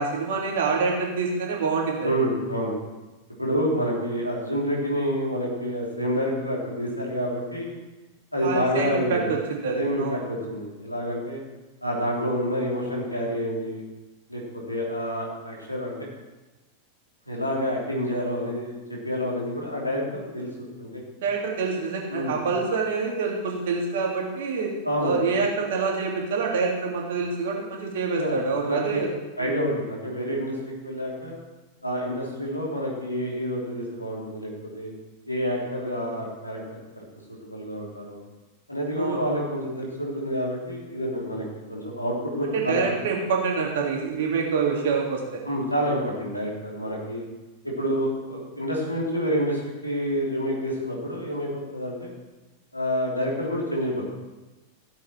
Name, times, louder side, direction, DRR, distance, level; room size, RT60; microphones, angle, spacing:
voice 1, 0.0-2.1 8.4-10.2 21.2-24.7 25.0-29.1 29.4-29.6 39.0-39.2 42.5-45.4, right 4 dB, 55° right, -1 dB, 2.8 m, -26 dB
voice 2, 2.0-2.7 3.4-7.8 8.3-9.3 9.7-11.4 11.8-13.8 14.3-14.4 14.7-16.1 17.3-18.8 19.0-21.0 22.1-22.3 24.8-25.1 28.1-29.0 29.4-31.3 31.8-34.9 35.3-37.0 37.5-38.2 38.7-42.8 45.4-47.2 47.6-52.1 52.7-54.1, equal, 85° left, -3 dB, 3.2 m, -28 dB
15.5 x 8.2 x 4.5 m, 1.1 s
figure-of-eight pair, 90°, 0 cm